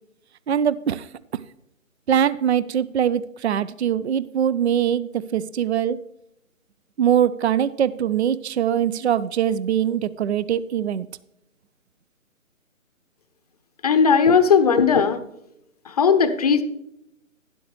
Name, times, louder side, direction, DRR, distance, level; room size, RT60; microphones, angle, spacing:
voice 1, 0.5-1.1 2.1-6.0 7.0-11.1, right 9 dB, 55° right, 0.5 m, -22 dB
voice 2, 13.8-15.2 15.9-16.6, left 6 dB, 30° left, 0.7 m, -17 dB
12.5 x 10.5 x 3.1 m
hypercardioid pair, 150°, 41 cm